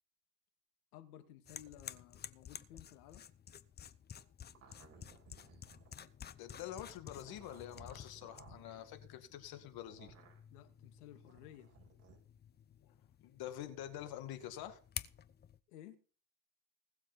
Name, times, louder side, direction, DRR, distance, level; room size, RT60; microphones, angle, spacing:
voice 1, 0.9-3.3 10.5-11.7 15.7-16.0, left 11 dB, 85° left, 2.4 m, -56 dB
sound 1, 1.4-15.6, left 8 dB, 25° left, 0.7 m, -52 dB
sound 2, 4.5-6.1 7.1-8.8 9.7-10.4 11.2-12.2, right 4 dB, 35° right, 6.4 m, -60 dB
voice 2, 6.4-10.1 13.2-14.8, left 11 dB, 55° left, 2.3 m, -46 dB
20.0 x 7.3 x 4.1 m
supercardioid pair, 120°, 43 cm